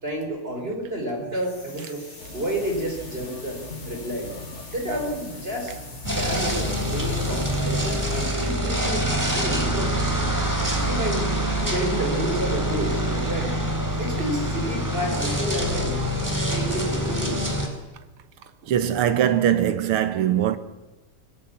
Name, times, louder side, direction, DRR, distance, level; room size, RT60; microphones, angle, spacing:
voice 1, 0.0-2.0 2.3-3.6 3.9-4.3 4.7-5.8 6.1-9.0 9.3-10.0 10.7-11.3 11.6-13.5 14.0-16.0 16.3-17.4, right 1 dB, 25° right, 5.6 m, -30 dB
sound 1, 1.2-10.1, left 2 dB, 70° left, 6.4 m, -46 dB
sound 2, 2.2-11.4, left 2 dB, 35° left, 2.3 m, -42 dB
sound 3, 6.0-17.7, equal, 10° right, 3.6 m, -25 dB
voice 2, 18.7-20.6, right 10 dB, 90° right, 2.0 m, -21 dB
25.5 x 20.5 x 7.3 m
omnidirectional pair, 2.3 m